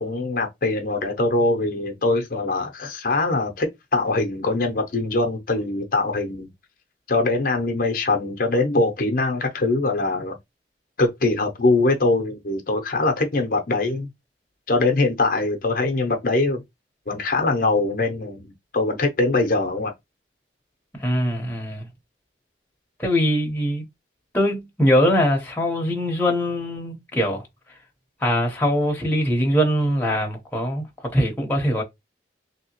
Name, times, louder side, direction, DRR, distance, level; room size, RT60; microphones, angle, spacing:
voice 1, 0.0-6.5 7.1-10.4 11.0-14.1 14.7-16.6 17.1-19.9, left 2 dB, 50° left, 0.6 m, -22 dB
voice 2, 20.9-21.9 23.0-23.9 24.3-27.5 28.2-31.8, equal, 10° left, 0.9 m, -22 dB
3.3 x 2.7 x 2.9 m
head